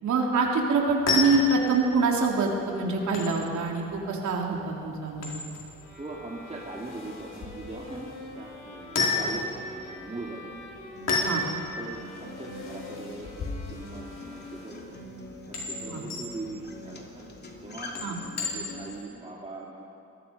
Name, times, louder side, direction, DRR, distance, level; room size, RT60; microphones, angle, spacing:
voice 1, 0.0-5.4 11.2-11.4 15.9-16.0 18.0-18.2, right 3 dB, 70° right, 0 dB, 3.7 m, -25 dB
sound 1, 0.8-19.0, left 4 dB, 60° left, 5.1 m, -34 dB
sound 2, 5.8-15.0, left 2 dB, 85° left, 6.9 m, -45 dB
voice 2, 6.0-10.5 11.2-11.4 11.8-15.0 15.5-17.2 17.6-17.9 18.3-19.8, right 2 dB, 20° right, -4 dB, 2.7 m, -41 dB
Acoustic guitar, 11.0-18.9, left 1 dB, 35° left, 3.0 m, -44 dB
26.0 x 19.5 x 5.5 m, 2.7 s
cardioid pair, 90°, 30 cm